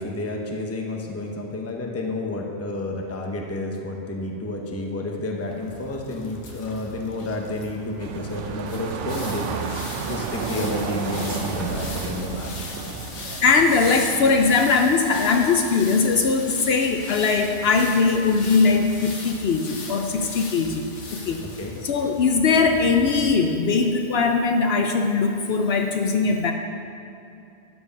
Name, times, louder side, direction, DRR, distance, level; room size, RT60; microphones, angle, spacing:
voice 1, 0.0-9.7 10.1-12.9 21.6-21.7, left 2 dB, 15° left, 1 dB, 0.6 m, -30 dB
sound 1, 5.5-23.3, left 2 dB, 80° left, 1.4 m, -39 dB
sound 2, 8.0-14.7, right 6 dB, 85° right, 0.9 m, -32 dB
voice 2, 13.4-20.8 21.1-21.4 21.8-26.5, left 4 dB, 65° left, 4 dB, 0.8 m, -20 dB
12.5 x 4.9 x 5.2 m, 2.5 s
omnidirectional pair, 1.2 m